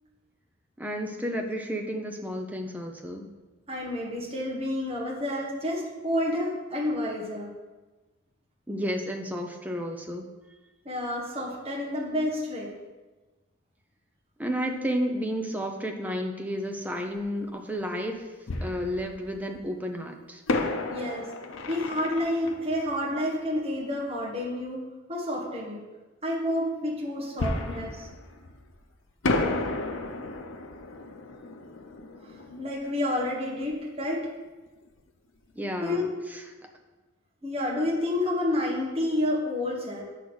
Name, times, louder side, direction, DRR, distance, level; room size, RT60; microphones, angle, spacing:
voice 1, 0.8-3.3 8.7-10.3 14.4-18.3 18.6-20.4 35.6-36.4, equal, 10° right, 3 dB, 0.6 m, -32 dB
voice 2, 3.7-7.5 10.9-12.7 20.9-21.3 21.7-24.8 25.1-25.8 26.2-28.1 32.2-34.3 35.8-36.0 37.4-40.0, left 1 dB, 30° right, -4 dB, 1.6 m, -29 dB
Fireworks, 17.2-17.3 18.5-19.6 20.5-23.9 27.4-28.8 29.2-33.8 34.0-34.1 34.7-34.9, left 2 dB, 80° left, 0.7 m, -33 dB
7.7 x 3.6 x 6.2 m, 1.2 s
head